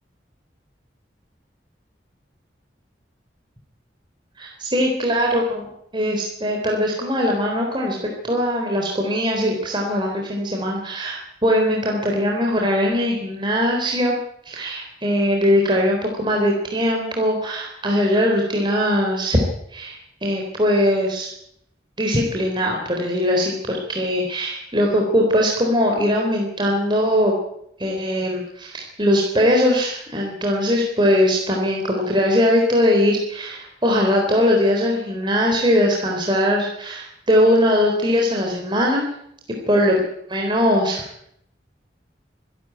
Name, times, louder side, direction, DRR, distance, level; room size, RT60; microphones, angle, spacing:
voice 1, 4.4-5.7 5.9-8.0 8.2-14.2 14.5-19.4 19.7-21.3 22.0-27.3 27.8-39.1 39.7-40.0 40.3-41.3, equal, 25° right, 0 dB, 3.8 m, -20 dB
25.5 x 12.5 x 9.5 m, 0.73 s
head